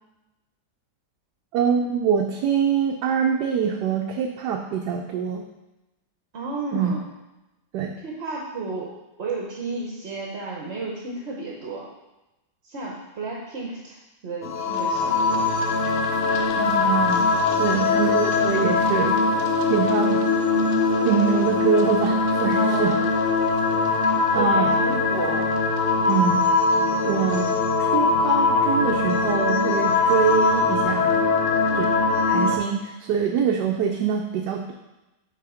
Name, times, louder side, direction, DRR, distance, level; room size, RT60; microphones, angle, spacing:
voice 1, 1.5-5.4 6.7-6.9 7.7-7.9 16.5-17.3 17.6-19.2 19.7-20.2 21.0-23.0 23.9-24.0 24.3-24.7 26.0-26.5 27.0-27.5 27.8-31.3 31.7-31.9 32.3-34.7, right 7 dB, 80° right, 1 dB, 1.2 m, -24 dB
voice 2, 6.3-7.0 8.0-8.9 9.2-11.9 12.6-15.7 17.5-17.9 22.5-23.0 24.3-25.5, right 3 dB, 45° right, -3 dB, 1.1 m, -32 dB
sound 1, 14.4-32.6, left 4 dB, 60° left, 0.6 m, -21 dB
5.6 x 4.2 x 5.0 m, 0.99 s
omnidirectional pair, 1.8 m